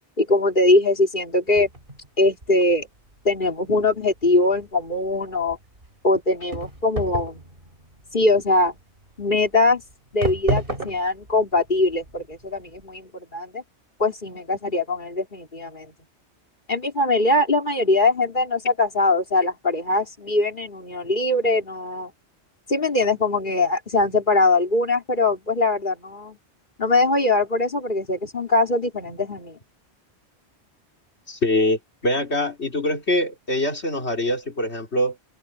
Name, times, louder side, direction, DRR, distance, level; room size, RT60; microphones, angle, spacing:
voice 1, 0.2-1.7 2.2-2.9 3.2-5.6 6.0-7.4 8.1-8.8 9.2-9.8 10.1-13.6 14.0-15.9 16.7-22.1 22.7-26.4 26.8-29.6, left 2 dB, 45° left, 4.3 m, -21 dB
sound 1, 1.5-12.9, right 2 dB, 50° right, 5.1 m, -33 dB
voice 2, 31.3-35.2, left 1 dB, 75° left, 4.0 m, -24 dB
omnidirectional pair, 1.1 m